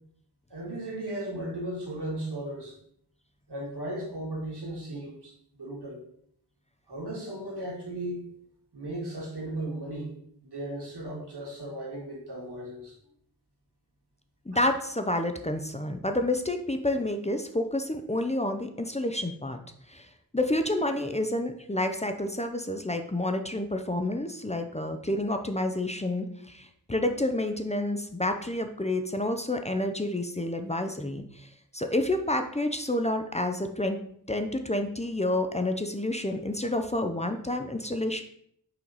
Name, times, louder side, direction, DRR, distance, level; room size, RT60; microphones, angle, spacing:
voice 1, 0.5-2.8 3.5-6.0 6.9-8.2 8.7-10.1 10.4-12.9 14.5-14.6, right 1 dB, 90° right, -2 dB, 1.9 m, -36 dB
voice 2, 14.5-19.6 19.9-20.1 20.3-31.5 31.7-34.0 34.3-38.2, left 1 dB, 15° left, 6 dB, 0.5 m, -29 dB
6.0 x 4.6 x 4.0 m, 0.67 s
wide cardioid pair, 70°, 39 cm